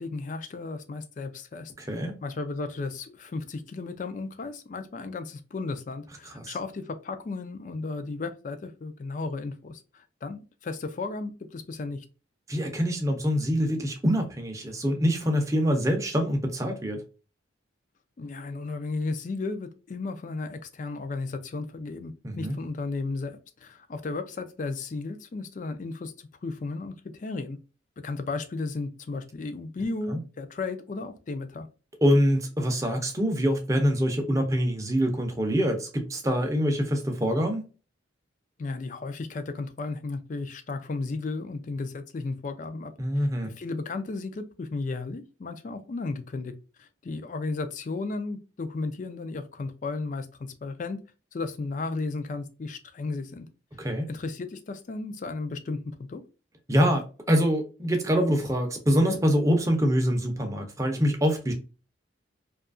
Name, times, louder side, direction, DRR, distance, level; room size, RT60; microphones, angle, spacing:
voice 1, 0.0-12.0 18.2-27.6 28.0-31.7 38.6-46.5 46.8-51.0 51.3-53.5 54.1-56.2, left 3 dB, 40° left, 0.3 m, -34 dB
voice 2, 1.8-2.1 6.3-6.6 12.5-17.0 22.2-22.5 30.1-30.2 32.0-37.6 43.0-43.5 53.8-54.0 56.7-61.5, equal, 15° right, 0.5 m, -25 dB
2.7 x 2.3 x 2.4 m
head